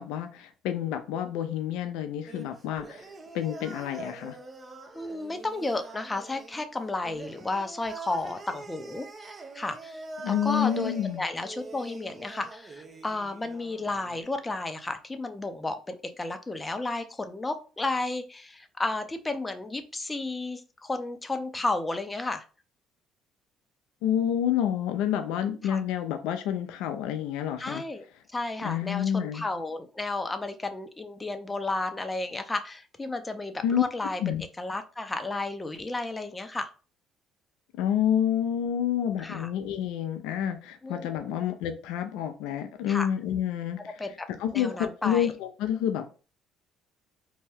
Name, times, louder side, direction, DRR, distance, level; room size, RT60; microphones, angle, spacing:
voice 1, 0.0-3.0 3.3-4.4 10.2-11.2 24.0-27.8 28.6-29.4 33.6-33.8 34.2-34.4 37.8-43.8 44.4-46.1, left 10 dB, 80° left, 7 dB, 0.4 m, -28 dB
sound 1, 2.3-14.2, right 3 dB, 30° right, 0.6 m, -44 dB
voice 2, 4.9-9.1 9.5-22.4 25.6-25.8 27.6-28.0 28.3-34.2 34.6-36.7 39.2-39.5 40.8-41.3 42.9-43.1 44.0-44.3 44.5-45.3, left 2 dB, 20° left, 8 dB, 0.5 m, -33 dB
2.7 x 2.2 x 3.3 m, 0.35 s
supercardioid pair, 80°, 0 cm